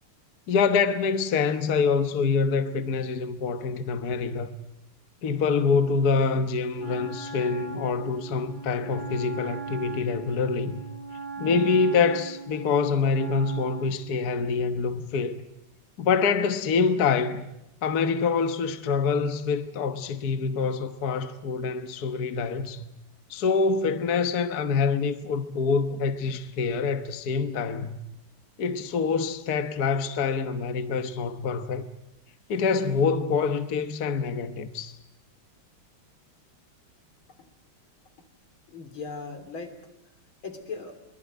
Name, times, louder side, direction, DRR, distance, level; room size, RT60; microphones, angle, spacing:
voice 1, 0.5-4.5 5.2-10.8 11.4-15.4 16.0-17.5 17.8-22.8 23.3-28.0 28.6-31.8 32.5-35.0, left 5 dB, 55° left, 1.6 m, -25 dB
Wind instrument woodwind instrument, 6.8-14.0, right 4 dB, 65° right, 4.2 m, -39 dB
voice 2, 38.7-40.1 40.4-41.0, left 4 dB, 90° left, 4.0 m, -39 dB
23.5 x 21.5 x 9.2 m
omnidirectional pair, 2.2 m